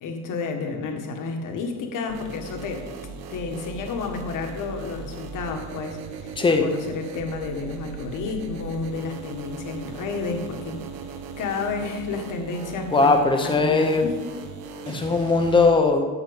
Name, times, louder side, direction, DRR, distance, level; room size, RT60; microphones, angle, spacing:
voice 1, 0.0-2.9 3.3-10.8 11.4-13.1 13.4-14.2, left 4 dB, 45° left, 3 dB, 1.6 m, -31 dB
sound 1, 2.1-15.7, right 5 dB, 60° right, 1.2 m, -38 dB
voice 2, 6.4-6.7 12.9-14.1 14.9-16.1, left 3 dB, 10° left, 5 dB, 0.9 m, -19 dB
13.0 x 4.4 x 7.9 m, 1.4 s
cardioid pair, 160°, 42 cm